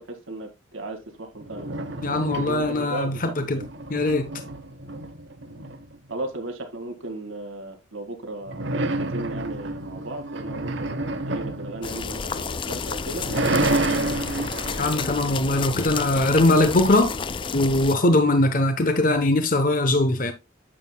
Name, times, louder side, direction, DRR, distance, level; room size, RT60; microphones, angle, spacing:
voice 1, 0.0-1.8 2.1-3.6 6.1-13.3 13.6-14.0, right 2 dB, 90° right, 2.0 m, -36 dB
sound 1, 1.4-3.0 3.4-6.1 8.5-12.6 13.0-16.1, right 2 dB, 65° right, 1.0 m, -29 dB
voice 2, 2.0-3.6 3.9-4.3 14.8-17.2 17.5-20.3, left 2 dB, 45° left, 0.9 m, -21 dB
sound 2, 11.8-18.0, left 5 dB, 25° left, 0.4 m, -31 dB
9.9 x 7.6 x 2.2 m
head